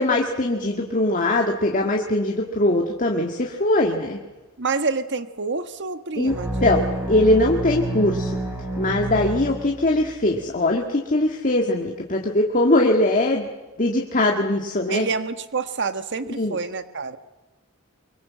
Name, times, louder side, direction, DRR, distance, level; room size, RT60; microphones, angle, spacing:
voice 1, 0.0-4.2 6.2-6.4 6.6-8.3 8.8-13.5 13.8-15.1 16.3-16.6, left 1 dB, 40° left, 1 dB, 2.0 m, -21 dB
voice 2, 4.6-7.0 14.9-17.2, right 4 dB, 55° right, 10 dB, 1.5 m, -28 dB
sound 1, 6.3-10.1, right 2 dB, 10° right, 4.9 m, -28 dB
24.0 x 23.5 x 7.5 m, 1.2 s
head